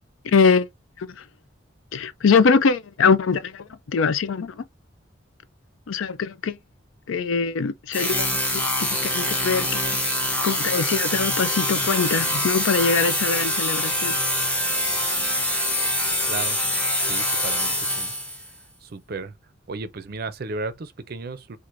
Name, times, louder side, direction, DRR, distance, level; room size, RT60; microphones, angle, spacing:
voice 1, 0.2-0.7 1.0-1.2 1.9-4.6 5.9-6.6 7.1-8.3 8.5-10.0 10.4-14.2, left 5 dB, 85° left, 0.4 m, -22 dB
sound 1, 7.9-18.5, left 1 dB, 10° left, 0.7 m, -24 dB
voice 2, 17.0-18.1 18.8-19.3 19.7-21.6, right 3 dB, 50° right, 0.5 m, -34 dB
4.5 x 2.5 x 2.5 m
head